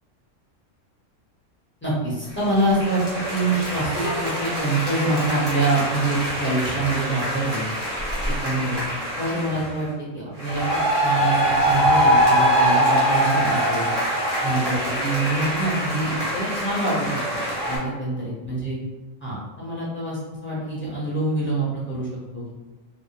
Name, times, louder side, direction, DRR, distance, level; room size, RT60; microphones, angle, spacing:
voice 1, 1.8-3.0 3.3-7.6 8.2-8.8 9.2-9.9 10.1-13.9 14.4-18.8 19.2-22.5, right 2 dB, 10° left, -9 dB, 0.6 m, -25 dB
Aplause - Amaze, 2.4-9.7 10.4-17.8, equal, 25° right, 0.7 m, -23 dB
2.2 x 2.1 x 2.8 m, 1.2 s
omnidirectional pair, 1.3 m